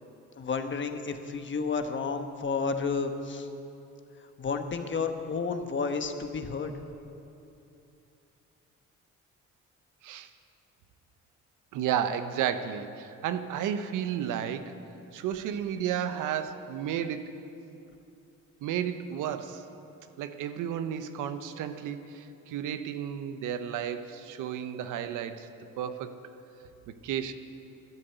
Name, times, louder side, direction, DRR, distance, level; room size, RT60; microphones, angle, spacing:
voice 1, 0.4-3.5 4.4-6.7, left 4 dB, 40° left, 7 dB, 1.2 m, -31 dB
voice 2, 11.7-14.7 15.1-17.3 18.6-19.6 20.2-25.5 25.8-26.2 26.9-27.3, right 9 dB, 90° right, 10 dB, 0.8 m, -32 dB
12.0 x 10.0 x 8.0 m, 2.7 s
cardioid pair, 90°, 30 cm